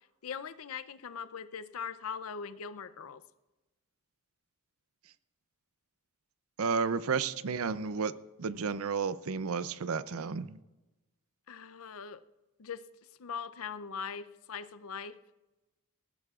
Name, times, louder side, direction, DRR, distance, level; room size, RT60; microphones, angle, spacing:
voice 1, 0.2-3.2 11.5-12.2 12.6-12.8 13.2-15.2, left 6 dB, 65° left, 13 dB, 0.5 m, -41 dB
voice 2, 6.6-8.1 8.4-10.6, right 5 dB, 70° right, 15 dB, 0.5 m, -32 dB
19.5 x 15.5 x 2.4 m, 1.1 s
head